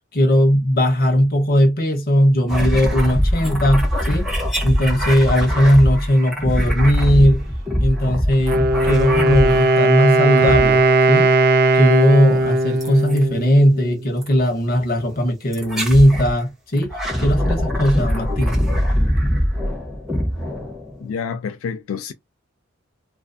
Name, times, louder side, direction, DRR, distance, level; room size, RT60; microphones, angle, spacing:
voice 1, 0.1-4.3 4.6-7.4 7.8-10.8 11.1-11.4 11.7-18.6, equal, 45° left, 0.8 m, -18 dB
sound 1, 2.5-9.9 10.3-11.1 12.8-13.2 14.2-14.4 15.5-16.3 16.8-21.1, equal, ahead, 0.8 m, -22 dB
Wind instrument woodwind instrument, 8.3-14.1, right 2 dB, 45° right, 0.4 m, -17 dB
voice 2, 21.0-22.1, left 6 dB, 80° left, 0.3 m, -28 dB
2.5 x 2.5 x 2.2 m
head